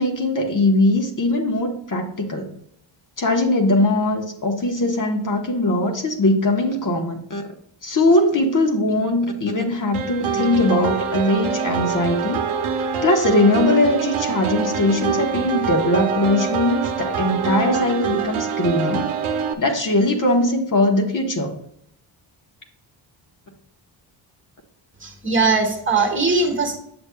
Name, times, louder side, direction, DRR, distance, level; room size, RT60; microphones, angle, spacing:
voice 1, 0.0-2.5 3.2-7.4 7.8-12.4 13.0-19.1 19.6-21.5, left 1 dB, 40° left, 2 dB, 1.1 m, -20 dB
sound 1, 9.9-19.5, right 6 dB, 85° right, 0.9 m, -25 dB
voice 2, 25.0-26.8, right 3 dB, 25° right, 3 dB, 1.3 m, -20 dB
7.9 x 7.0 x 2.3 m, 0.71 s
cardioid pair, 100°, 48 cm